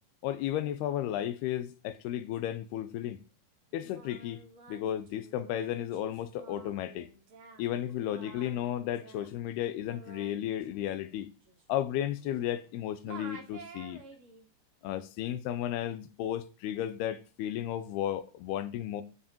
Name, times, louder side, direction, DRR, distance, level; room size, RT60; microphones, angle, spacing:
voice 1, 0.2-3.2 3.7-7.1 7.6-11.3 11.7-14.0 14.8-19.0, left 11 dB, 80° left, 2.5 m, -34 dB
Singing, 3.7-12.7 13.0-14.5, right 4 dB, 40° right, 2.3 m, -52 dB
13.0 x 5.5 x 5.3 m
omnidirectional pair, 5.1 m